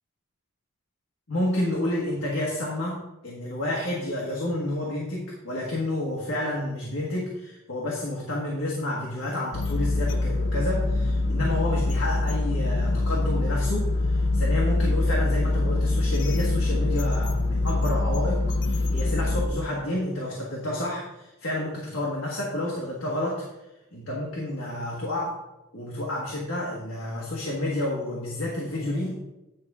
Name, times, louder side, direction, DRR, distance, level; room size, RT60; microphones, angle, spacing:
voice 1, 1.3-3.0 3.2-23.4 23.9-25.3 25.7-29.1, left 1 dB, 80° left, -4 dB, 1.5 m, -30 dB
sound 1, 9.5-19.5, left 2 dB, 65° left, 0.7 m, -24 dB
9.6 x 5.3 x 3.6 m, 0.97 s
head